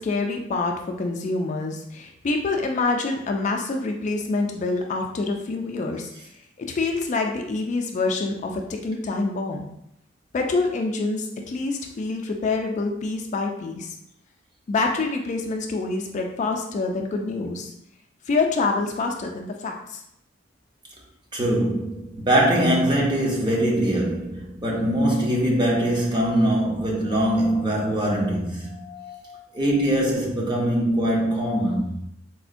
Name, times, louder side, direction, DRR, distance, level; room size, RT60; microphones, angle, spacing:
voice 1, 0.0-6.1 6.6-9.7 10.3-13.9 14.7-17.7 18.3-20.0, left 3 dB, 40° left, 2 dB, 0.3 m, -26 dB
voice 2, 21.3-31.9, right 1 dB, 25° right, -3 dB, 0.7 m, -22 dB
4.2 x 2.1 x 2.5 m, 0.77 s
head